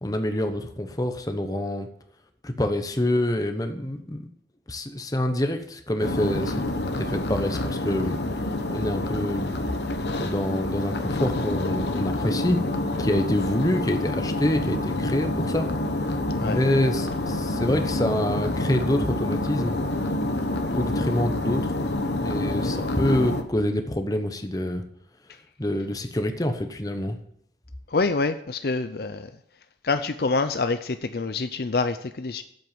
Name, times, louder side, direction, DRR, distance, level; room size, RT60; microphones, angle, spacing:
voice 1, 0.0-1.9 2.4-4.3 4.7-6.6 7.0-9.5 10.2-12.6 13.0-15.7 16.4-19.8 20.7-21.8 22.2-24.8 25.6-27.2, left 1 dB, 20° left, 6 dB, 0.9 m, -26 dB
sound 1, 6.0-23.4, left 1 dB, 75° left, 1.2 m, -27 dB
voice 2, 27.9-29.3 29.8-32.4, left 3 dB, 55° left, 10 dB, 0.5 m, -26 dB
7.9 x 7.9 x 8.8 m, 0.70 s
head